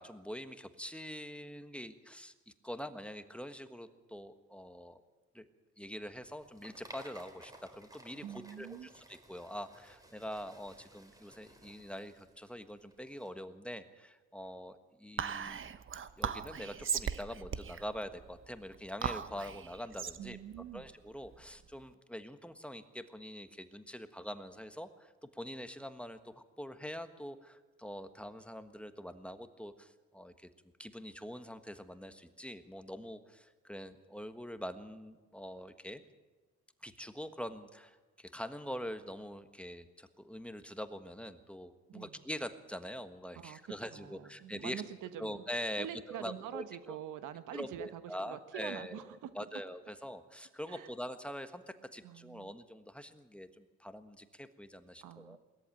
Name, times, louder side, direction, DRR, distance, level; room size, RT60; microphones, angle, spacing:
voice 1, 0.0-5.0 5.3-5.5 5.8-15.6 16.2-20.4 20.7-30.5 30.8-36.0 36.8-44.8 45.2-47.0 47.5-55.4, equal, 5° left, 9 dB, 1.4 m, -44 dB
sound 1, 6.2-13.3, right 1 dB, 10° right, 3.8 m, -57 dB
voice 2, 8.2-8.9 20.2-20.9 41.9-42.2 43.3-43.6 43.9-45.4 45.8-49.3 50.7-50.9 52.0-52.5 55.0-55.4, right 10 dB, 85° right, 10 dB, 1.4 m, -45 dB
Whispering, 15.2-21.8, right 7 dB, 40° right, 1.1 m, -39 dB
20.5 x 14.0 x 9.1 m, 1.3 s
cardioid pair, 90°, 30 cm